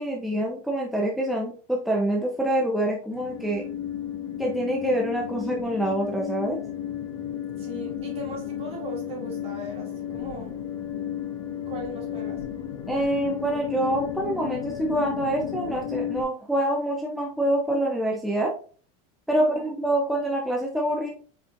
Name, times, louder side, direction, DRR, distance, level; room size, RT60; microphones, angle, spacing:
voice 1, 0.0-3.6 4.4-6.6 12.9-18.5 19.3-21.1, right 1 dB, ahead, -1 dB, 0.6 m, -26 dB
sound 1, 3.1-16.2, left 9 dB, 85° left, 1.5 m, -33 dB
voice 2, 7.6-10.6 11.7-12.4 19.3-19.7, right 1 dB, 35° right, -2 dB, 2.3 m, -39 dB
5.0 x 4.3 x 2.5 m, 0.41 s
supercardioid pair, 145°, 18 cm